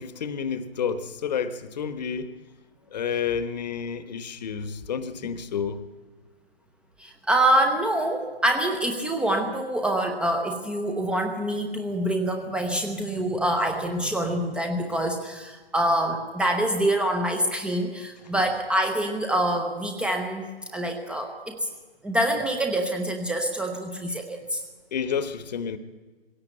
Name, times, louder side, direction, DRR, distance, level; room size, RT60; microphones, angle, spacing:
voice 1, 0.0-2.4 2.9-5.8 24.9-25.8, left 7 dB, 40° left, 12 dB, 1.3 m, -30 dB
voice 2, 7.0-21.7 22.0-24.6, right 1 dB, 5° right, 3 dB, 0.8 m, -26 dB
21.0 x 17.0 x 7.9 m, 1.3 s
figure-of-eight pair, 130°, 32 cm